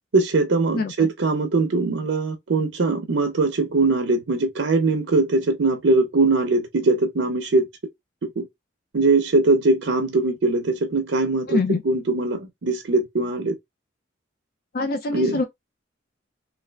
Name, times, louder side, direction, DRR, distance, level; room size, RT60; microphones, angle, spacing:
voice 1, 0.1-7.7 8.2-8.5 8.9-13.6 15.1-15.4, right 3 dB, 70° right, 0.6 m, -21 dB
voice 2, 0.7-1.1 11.5-11.8 14.7-15.4, left 3 dB, 50° left, 0.4 m, -24 dB
3.2 x 2.4 x 2.2 m
head